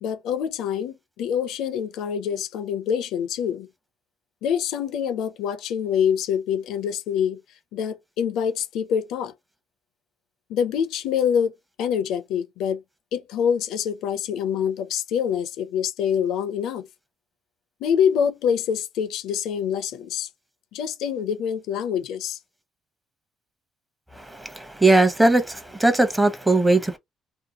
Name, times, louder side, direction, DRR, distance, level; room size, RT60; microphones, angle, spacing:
voice 1, 0.0-3.7 4.4-7.4 7.7-9.3 10.5-11.5 11.8-12.8 13.1-16.8 17.8-20.3 20.7-22.4, left 8 dB, 80° left, 0.5 m, -25 dB
voice 2, 24.4-27.0, right 2 dB, 10° right, 0.8 m, -19 dB
2.7 x 2.2 x 2.8 m
supercardioid pair, 80°, 0 cm